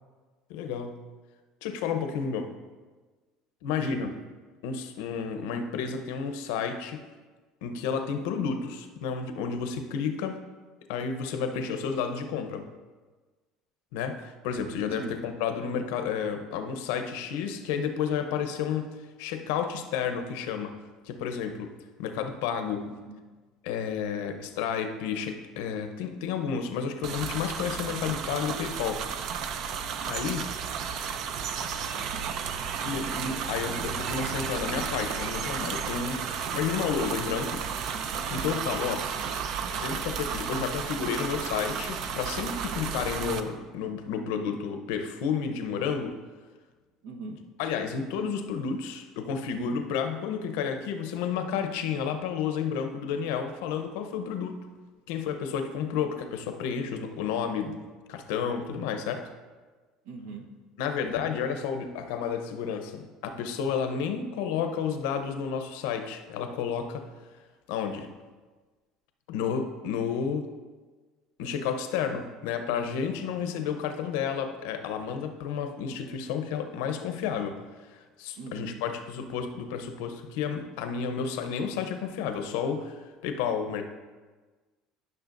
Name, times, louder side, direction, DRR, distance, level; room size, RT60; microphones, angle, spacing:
voice 1, 0.5-1.0 1.6-2.5 3.6-4.1 4.6-7.0 7.6-10.4 10.9-12.7 13.9-20.7 21.1-21.7 22.0-22.9 23.6-29.1 30.1-30.6 32.8-36.3 36.5-37.6 38.3-39.0 39.8-46.2 47.6-54.7 55.1-57.8 58.1-59.3 60.8-67.1 67.7-68.1 69.3-70.5 71.4-77.6 77.9-83.8, left 7 dB, 85° left, 7 dB, 0.7 m, -31 dB
voice 2, 11.4-11.7 15.0-15.1 22.9-23.2 38.6-39.0 47.0-47.4 55.9-56.3 60.0-60.5 73.2-73.5 78.4-78.8, right 4 dB, 90° right, 3 dB, 1.1 m, -42 dB
sound 1, 27.0-43.4, right 7 dB, 55° right, 0.5 m, -33 dB
12.0 x 6.1 x 2.6 m, 1.3 s
cardioid pair, 135°, 0 cm